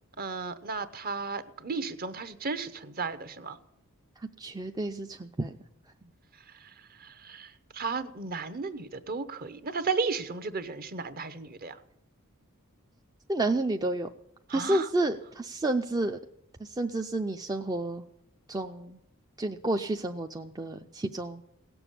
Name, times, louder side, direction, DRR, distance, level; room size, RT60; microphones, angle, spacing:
voice 1, 0.2-3.6 6.5-6.7 7.0-11.8 14.5-14.9, right 4 dB, 40° right, 13 dB, 0.9 m, -34 dB
voice 2, 4.4-5.6 13.3-14.1 14.5-16.2 16.6-18.1 18.5-19.0 19.4-21.4, right 2 dB, 15° right, 5 dB, 0.5 m, -30 dB
17.5 x 7.0 x 10.0 m, 0.80 s
head